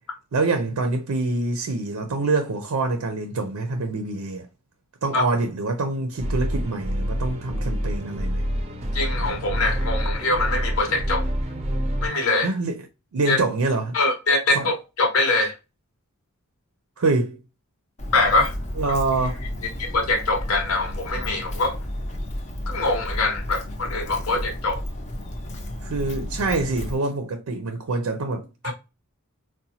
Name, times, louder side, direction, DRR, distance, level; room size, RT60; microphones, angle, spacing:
voice 1, 0.3-4.5 5.0-8.5 12.4-12.9 13.1-14.0 14.5-14.7 17.0-17.4 18.8-19.4 25.8-28.7, right 3 dB, 85° right, 0.5 m, -25 dB
sound 1, 6.2-12.1, equal, 30° right, 0.5 m, -27 dB
voice 2, 8.9-11.2 12.0-12.5 13.3-13.4 13.9-15.5 18.1-18.5 19.9-21.7 22.7-24.8 28.6-28.7, left 2 dB, 75° left, 0.9 m, -23 dB
Walk footsteps, 18.0-27.0, left 1 dB, 30° left, 0.5 m, -32 dB
3.9 x 2.1 x 2.7 m
head